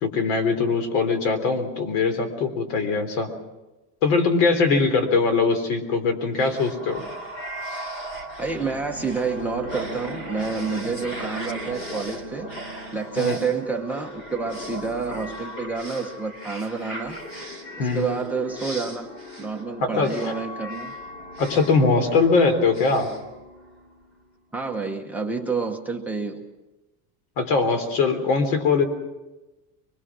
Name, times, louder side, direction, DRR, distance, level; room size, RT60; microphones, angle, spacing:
voice 1, 0.0-3.3 4.0-7.0 13.2-13.4 17.8-18.1 19.8-20.3 21.4-23.1 27.4-28.8, left 4 dB, 80° left, 8 dB, 3.9 m, -21 dB
sound 1, 6.4-24.0, equal, 25° left, 3.1 m, -37 dB
voice 2, 8.4-12.6 12.9-17.2 17.8-19.1 19.4-20.9 24.5-26.4, right 4 dB, 5° right, 6 dB, 1.0 m, -29 dB
24.5 x 22.0 x 6.2 m, 1.1 s
cardioid pair, 170°, 45 cm